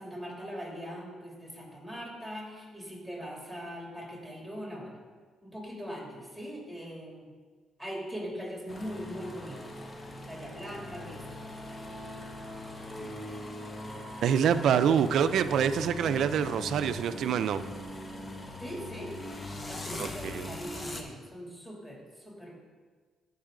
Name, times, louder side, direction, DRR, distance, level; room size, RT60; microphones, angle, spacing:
voice 1, 0.0-5.0 5.4-7.3 7.8-9.7 10.2-11.4 18.6-19.1 19.7-22.6, equal, 5° left, -2 dB, 2.9 m, -41 dB
sound 1, 8.7-21.0, left 1 dB, 30° left, 1.0 m, -41 dB
voice 2, 14.2-17.6 20.0-20.5, right 8 dB, 75° right, 11 dB, 0.4 m, -26 dB
14.0 x 5.5 x 3.8 m, 1.5 s
cardioid pair, 90°, 0 cm